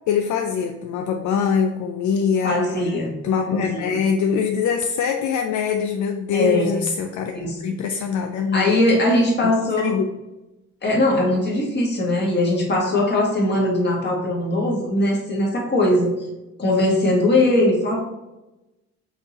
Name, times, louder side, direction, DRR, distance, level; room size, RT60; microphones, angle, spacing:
voice 1, 0.1-2.8 3.2-7.4 7.6-9.0 9.4-10.1, left 6 dB, 70° left, 3 dB, 0.4 m, -23 dB
voice 2, 2.4-3.2 3.5-4.0 6.3-6.8 7.3-7.6 8.5-10.0 10.8-16.3 16.6-18.0, left 1 dB, 35° left, -2 dB, 1.4 m, -20 dB
5.7 x 2.7 x 2.8 m, 1.0 s
cardioid pair, 90°, 30 cm